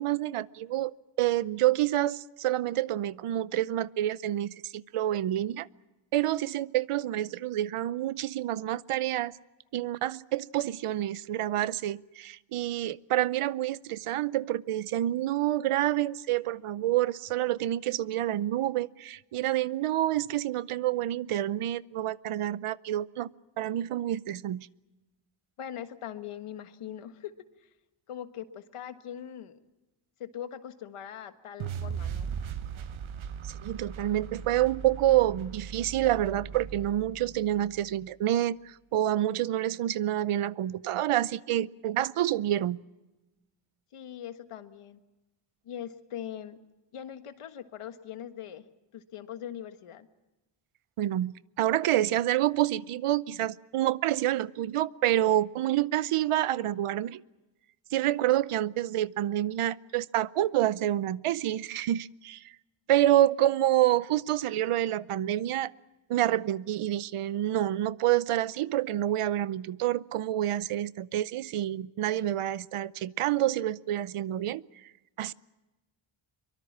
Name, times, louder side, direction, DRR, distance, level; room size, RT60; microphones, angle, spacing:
voice 1, 0.0-5.7 6.1-9.3 9.7-23.3 23.6-24.7 33.4-42.8 51.0-57.2 57.9-62.5 62.9-65.7 66.1-74.6 75.2-75.3, right 13 dB, 90° right, 19 dB, 0.8 m, -28 dB
voice 2, 25.6-27.3 27.6-27.7 28.1-29.6 30.2-32.3 43.9-45.0 45.7-46.6 46.9-48.6 48.9-50.1, left 10 dB, 90° left, 10 dB, 1.6 m, -41 dB
sound 1, 31.6-37.8, right 7 dB, 70° right, 1.3 m, -38 dB
23.5 x 23.5 x 7.3 m, 1.1 s
wide cardioid pair, 140°, 50 cm